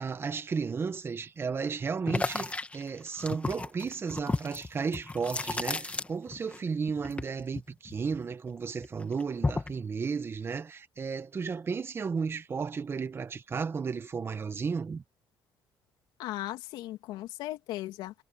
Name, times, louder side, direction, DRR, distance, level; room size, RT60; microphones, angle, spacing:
voice 1, 0.0-15.0, right 5 dB, 30° right, 1.7 m, -33 dB
sound 1, 2.1-6.6 6.8-8.5 8.8-9.8, left 3 dB, 15° left, 2.5 m, -33 dB
voice 2, 16.2-18.2, left 15 dB, 85° left, 3.0 m, -37 dB
cardioid pair, 110°, 8 cm